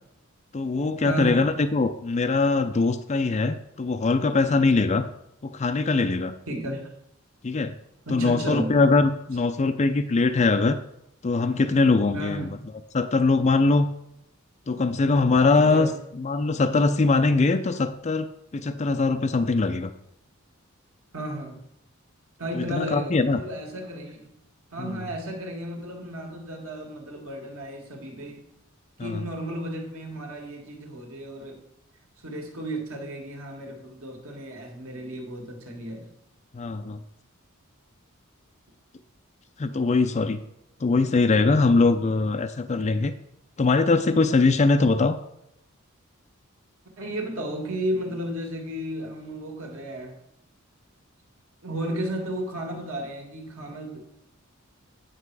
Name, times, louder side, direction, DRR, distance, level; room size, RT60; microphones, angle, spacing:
voice 1, 0.5-5.0 5.4-6.3 7.4-7.7 8.1-10.8 11.2-12.5 12.9-13.9 14.7-15.9 16.2-19.9 22.5-23.4 24.8-25.0 29.0-29.2 36.5-37.0 39.6-40.4 40.8-43.1 43.6-45.2, left 3 dB, 35° left, 0.4 m, -22 dB
voice 2, 1.0-1.5 6.5-6.9 8.1-8.8 12.1-12.6 15.5-16.0 21.1-21.6 22.4-24.3 24.7-28.4 29.0-31.6 32.2-36.1 47.0-50.2 51.6-54.0, right 1 dB, 85° right, 1.9 m, -33 dB
9.1 x 6.6 x 4.7 m
head